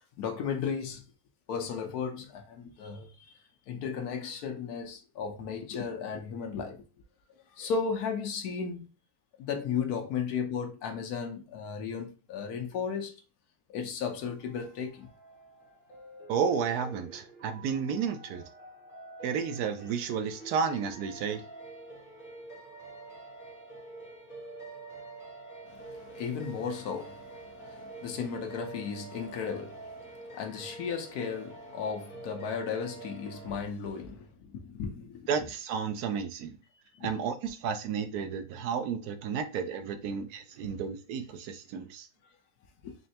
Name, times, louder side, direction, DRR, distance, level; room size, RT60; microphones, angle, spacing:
voice 1, 0.2-1.0 1.5-3.3 3.7-6.8 7.6-8.9 9.4-13.1 13.7-15.1 25.7-35.3 37.0-37.1 40.7-40.8 42.8-43.0, left 6 dB, 80° left, 1.3 m, -35 dB
sound 1, 14.2-33.5, right 2 dB, 35° left, 1.9 m, -47 dB
voice 2, 16.3-18.4 19.2-21.4 35.3-36.5 37.0-42.1, right 6 dB, 80° right, 1.1 m, -32 dB
4.3 x 3.2 x 2.8 m
omnidirectional pair, 1.6 m